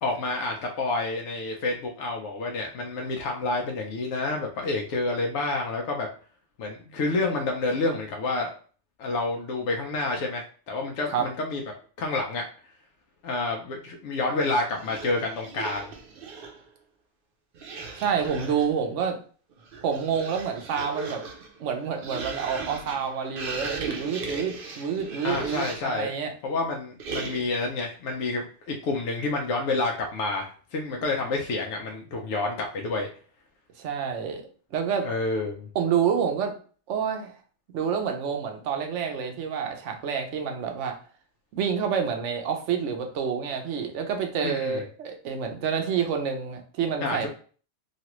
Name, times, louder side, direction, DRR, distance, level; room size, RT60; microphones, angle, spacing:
voice 1, 0.0-6.1 6.6-8.6 9.0-11.6 12.0-12.4 13.2-15.9 25.2-26.1 26.4-33.1 35.0-35.7 44.4-44.8 47.0-47.3, left 3 dB, 80° left, 1 dB, 0.9 m, -29 dB
sound 1, 14.8-16.7 17.5-18.8 19.5-26.0 27.0-27.7, right 4 dB, 60° right, 0.7 m, -37 dB
voice 2, 18.0-19.2 19.8-21.2 21.6-26.3 33.8-35.1 35.7-36.6 36.9-37.4 37.7-41.0 41.5-47.3, right 7 dB, 90° right, 4 dB, 1.0 m, -28 dB
3.1 x 2.4 x 2.9 m, 0.41 s
omnidirectional pair, 1.2 m